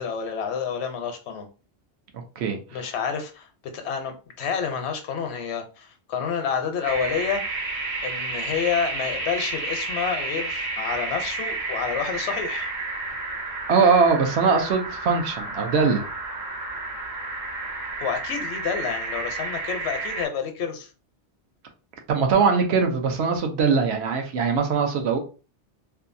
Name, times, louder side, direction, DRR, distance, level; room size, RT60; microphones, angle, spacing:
voice 1, 0.0-1.5 2.7-3.5 3.7-7.7 8.0-12.7 18.0-20.9, left 6 dB, 75° left, 0.9 m, -29 dB
voice 2, 2.4-2.9 13.7-16.1 22.1-25.2, right 5 dB, 75° right, 0.8 m, -21 dB
sound 1, 6.8-20.3, right 3 dB, 45° right, 0.9 m, -31 dB
2.6 x 2.3 x 2.5 m
omnidirectional pair, 1.2 m